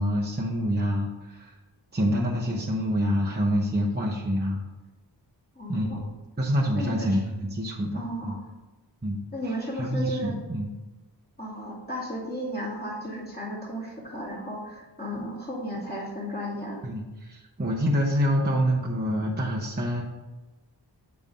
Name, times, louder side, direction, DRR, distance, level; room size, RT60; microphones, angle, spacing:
voice 1, 0.0-1.5 1.9-4.6 5.7-5.9 6.4-8.4 9.0-10.7 16.8-20.0, equal, 20° right, -3 dB, 0.9 m, -27 dB
voice 2, 5.5-6.1 6.7-7.2 7.9-8.4 9.3-10.4 11.4-16.8, equal, 20° left, -4 dB, 2.3 m, -34 dB
7.4 x 3.5 x 5.3 m, 1.2 s
wide cardioid pair, 50°, 45 cm